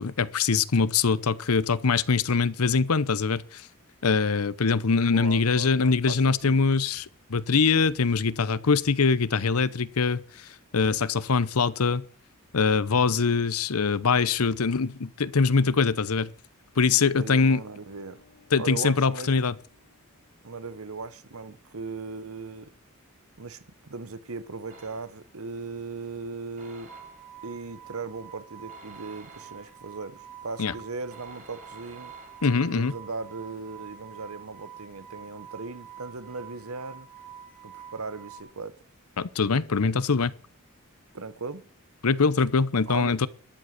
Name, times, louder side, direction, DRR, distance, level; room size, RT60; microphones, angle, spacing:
voice 1, 0.0-3.7 4.0-12.0 12.5-16.3 16.8-17.6 18.5-19.5 30.6-30.7 32.4-32.9 39.2-40.3 42.0-43.3, left 4 dB, 90° left, 0.8 m, -23 dB
voice 2, 5.1-6.6 17.2-18.2 18.6-19.4 20.4-22.7 23.4-26.9 27.4-32.1 32.7-37.1 37.6-38.7 41.1-41.6 42.9-43.3, right 4 dB, 75° right, 1.0 m, -38 dB
sound 1, 16.7-21.4 24.6-25.2, left 4 dB, 45° left, 4.3 m, -63 dB
sound 2, 24.7-25.4 26.6-27.5 28.7-29.9 31.1-32.8, right 2 dB, 40° right, 4.7 m, -52 dB
sound 3, 26.9-38.4, right 8 dB, 10° left, 2.3 m, -47 dB
12.5 x 7.8 x 8.1 m
head